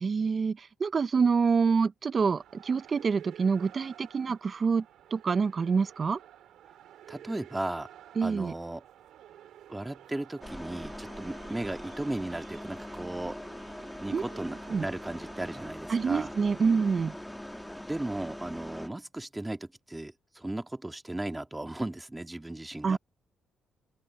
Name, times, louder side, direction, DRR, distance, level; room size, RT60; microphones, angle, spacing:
voice 1, 0.0-4.8 5.1-6.2 8.2-8.5 14.1-14.2 14.7-14.9 15.9-17.1 22.8-23.0, right 5 dB, 40° right, 0.5 m, -26 dB
sound 1, 2.4-15.7, right 11 dB, 80° right, 3.3 m, -52 dB
voice 2, 7.1-7.9 8.2-8.8 9.7-13.4 14.0-14.6 14.8-16.3 17.9-23.0, right 1 dB, 10° right, 2.0 m, -36 dB
sound 2, 10.4-18.9, left 1 dB, 5° left, 1.8 m, -42 dB
open air
cardioid pair, 90°, 0 cm